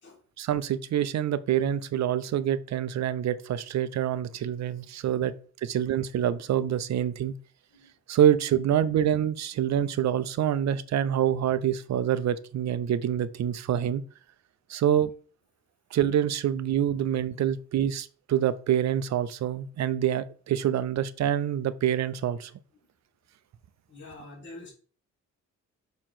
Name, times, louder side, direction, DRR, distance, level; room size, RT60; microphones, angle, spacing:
voice 1, 0.4-5.3 5.6-7.3 8.1-14.0 14.7-15.1 15.9-22.5, right 10 dB, 60° right, 0.6 m, -26 dB
voice 2, 23.9-24.7, left 2 dB, 40° left, 2.3 m, -45 dB
6.6 x 3.1 x 5.8 m
cardioid pair, 110°, 30 cm